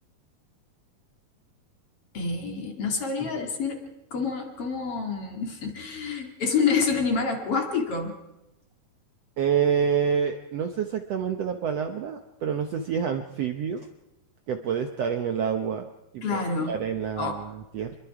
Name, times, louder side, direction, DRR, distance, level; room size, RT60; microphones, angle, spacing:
voice 1, 2.1-3.8 4.1-8.1 16.2-16.8 17.2-17.4, left 5 dB, 45° left, 3 dB, 2.9 m, -27 dB
voice 2, 9.4-13.9 14.5-15.9 16.1-16.4 16.7-17.9, right 7 dB, 65° right, 6 dB, 1.6 m, -27 dB
26.0 x 22.0 x 4.8 m, 0.93 s
omnidirectional pair, 3.9 m